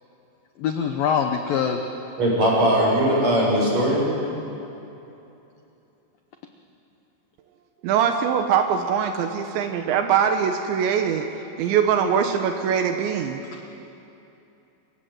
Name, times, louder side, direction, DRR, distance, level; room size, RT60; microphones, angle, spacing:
voice 1, 0.6-1.8 13.5-13.8, left 7 dB, 75° left, 5 dB, 2.2 m, -24 dB
voice 2, 2.2-4.1, right 1 dB, 35° right, -3 dB, 8.1 m, -20 dB
voice 3, 7.8-11.3 11.6-13.4, right 7 dB, 75° right, 5 dB, 3.2 m, -22 dB
27.5 x 24.5 x 7.9 m, 2.9 s
omnidirectional pair, 5.4 m